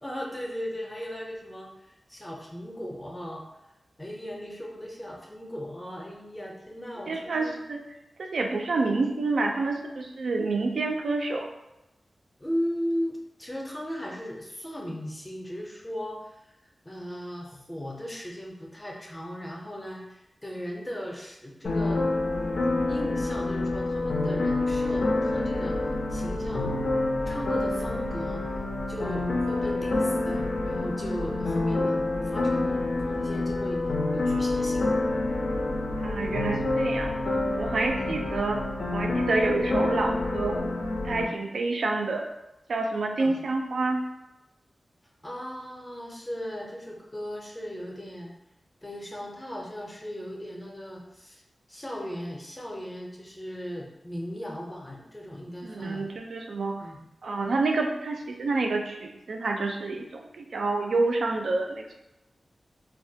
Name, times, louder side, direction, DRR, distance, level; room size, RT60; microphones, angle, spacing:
voice 1, 0.0-3.4 4.0-7.6 12.4-16.5 16.9-22.0 22.9-25.8 26.1-26.8 27.3-28.4 28.9-33.8 34.1-34.9 38.0-38.3 43.2-43.4 45.2-48.3 48.8-51.4 51.7-56.1 56.8-57.1, equal, 15° left, -1 dB, 0.5 m, -37 dB
voice 2, 7.1-7.8 8.2-11.5 36.0-37.1 37.6-38.6 38.9-40.6 41.0-42.2 42.7-44.0 55.6-56.8 57.2-61.9, right 3 dB, 85° right, 2 dB, 0.3 m, -28 dB
sound 1, 21.6-41.2, left 2 dB, 75° left, 0.4 m, -27 dB
2.2 x 2.1 x 2.6 m, 0.95 s
wide cardioid pair, 125°, 0 cm